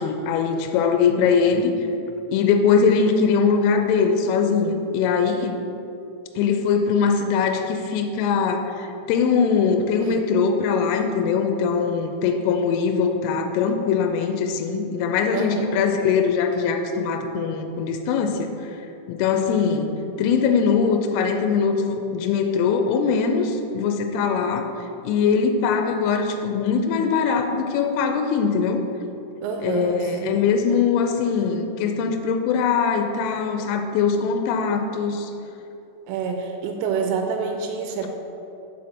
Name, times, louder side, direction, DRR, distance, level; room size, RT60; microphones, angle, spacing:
voice 1, 0.0-1.7 2.3-5.5 6.4-18.5 19.1-19.9 20.2-24.7 25.0-28.8 29.6-35.3, left 6 dB, 85° left, 5 dB, 3.1 m, -21 dB
voice 2, 15.3-15.9 29.4-30.4 36.1-38.1, right 5 dB, 85° right, 3 dB, 3.0 m, -28 dB
7.4 x 4.3 x 6.3 m, 2.8 s
omnidirectional pair, 6.0 m